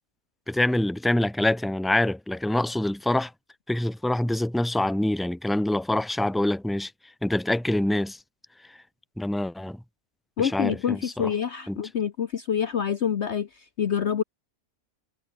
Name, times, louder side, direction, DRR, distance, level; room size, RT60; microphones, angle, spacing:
voice 1, 0.5-3.3 3.7-6.9 7.2-8.2 8.7-8.8 9.2-9.8 10.4-11.3 11.7-11.8, left 1 dB, ahead, 1.5 m, -25 dB
voice 2, 10.4-14.2, left 8 dB, 50° left, 1.1 m, -27 dB
omnidirectional pair, 1.6 m